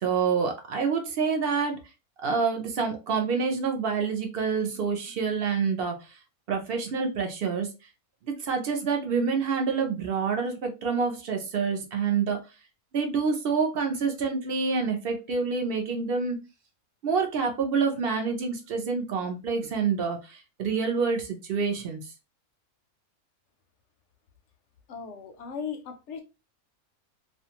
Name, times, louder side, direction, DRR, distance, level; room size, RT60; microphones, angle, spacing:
voice 1, 0.0-1.8 2.2-6.2 6.5-7.7 8.2-12.4 12.9-16.4 17.0-22.0, right 5 dB, 60° right, 0.6 m, -27 dB
voice 2, 24.9-26.2, left 6 dB, 65° left, 0.7 m, -37 dB
2.5 x 2.2 x 2.8 m
omnidirectional pair, 1.5 m